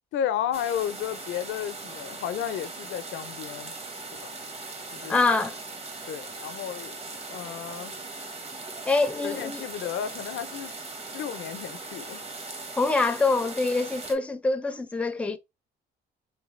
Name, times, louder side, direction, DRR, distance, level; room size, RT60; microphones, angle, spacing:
voice 1, 0.1-3.8 4.1-4.3 4.9-5.3 6.1-7.0 7.3-8.0 9.1-10.7 11.1-12.2, left 10 dB, 75° left, 0.5 m, -33 dB
sound 1, 0.5-14.1, right 3 dB, 30° right, 1.1 m, -39 dB
voice 2, 5.1-5.6 8.9-9.6 12.7-15.4, left 3 dB, 5° left, 0.5 m, -25 dB
3.3 x 3.2 x 3.1 m
cardioid pair, 90°, 20 cm